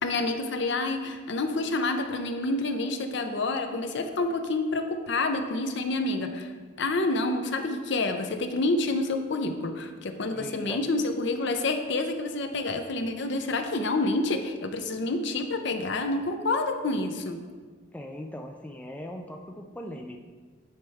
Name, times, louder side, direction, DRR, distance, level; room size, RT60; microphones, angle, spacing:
voice 1, 0.0-6.5 6.8-17.4, left 2 dB, 60° left, 6 dB, 0.6 m, -28 dB
voice 2, 10.3-10.8 17.9-20.2, left 1 dB, 10° left, 2 dB, 0.4 m, -39 dB
9.5 x 4.4 x 3.5 m, 1.4 s
head